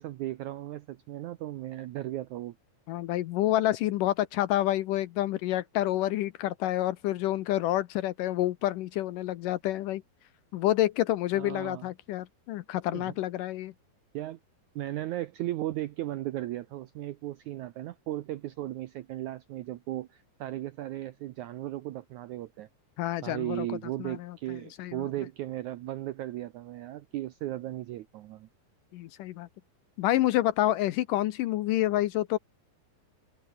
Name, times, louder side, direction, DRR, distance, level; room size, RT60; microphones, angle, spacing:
voice 1, 0.0-2.6 11.3-11.9 12.9-13.1 14.1-14.4 14.8-22.7 23.2-28.5, right 15 dB, 80° right, 1.7 m, -36 dB
voice 2, 2.9-10.0 10.5-13.7 23.0-23.7 24.0-24.4 24.8-25.1 28.9-29.5 30.0-32.4, left 14 dB, 75° left, 2.1 m, -28 dB
omnidirectional pair, 4.3 m